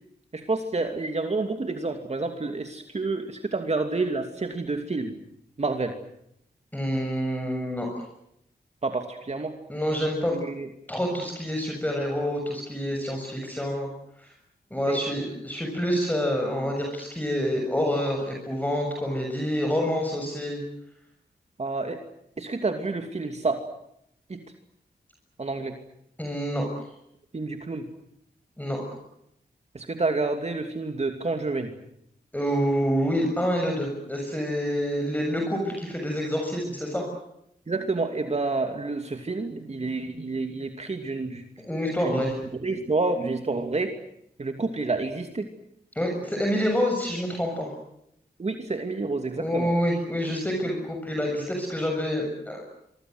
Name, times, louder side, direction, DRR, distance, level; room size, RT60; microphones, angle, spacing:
voice 1, 0.3-5.1 5.6-5.9 8.8-9.5 10.3-10.7 14.8-15.0 21.6-22.0 22.4-23.6 24.3-24.4 25.4-25.7 27.3-27.9 29.7-31.7 37.7-41.4 42.0-42.3 42.6-43.9 44.4-45.5 48.4-49.7, right 3 dB, 40° right, 5 dB, 2.8 m, -29 dB
voice 2, 6.7-7.9 9.7-10.4 10.9-13.9 14.2-14.3 14.7-20.6 26.2-26.9 28.6-28.8 32.3-37.1 41.6-42.3 45.9-47.7 49.4-52.6, equal, 10° left, 1 dB, 7.1 m, -27 dB
26.5 x 24.5 x 8.0 m, 0.76 s
cardioid pair, 75°, 16 cm